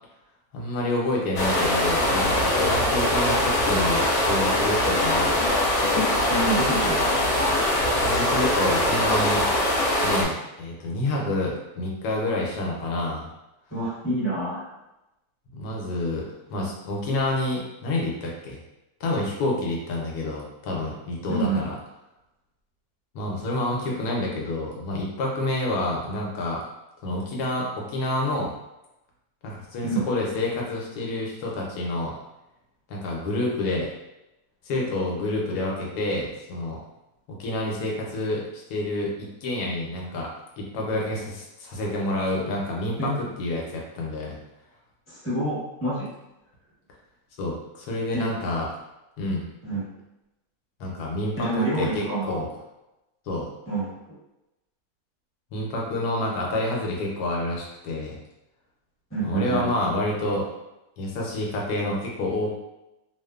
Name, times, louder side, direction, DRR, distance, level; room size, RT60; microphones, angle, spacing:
voice 1, 0.5-5.4 7.9-9.4 10.0-13.3 15.5-16.2 16.5-18.6 19.0-21.5 23.1-26.6 27.0-28.5 29.4-32.1 32.9-33.9 34.6-36.8 37.3-40.3 40.6-44.4 47.4-48.7 49.2-49.5 50.8-52.5 53.3-53.5 55.5-58.2 59.2-60.5 61.0-62.5, left 1 dB, 90° left, -2 dB, 1.2 m, -28 dB
sound 1, 1.4-10.2, left 1 dB, 65° left, 0.6 m, -22 dB
voice 2, 6.3-7.1 13.7-14.7 21.3-21.7 29.8-30.1 43.0-43.2 45.1-46.1 48.1-48.3 49.6-49.8 51.4-52.4 53.7-53.9 59.1-59.7, right 2 dB, 10° left, -9 dB, 0.9 m, -27 dB
2.9 x 2.1 x 2.3 m, 0.94 s
omnidirectional pair, 1.6 m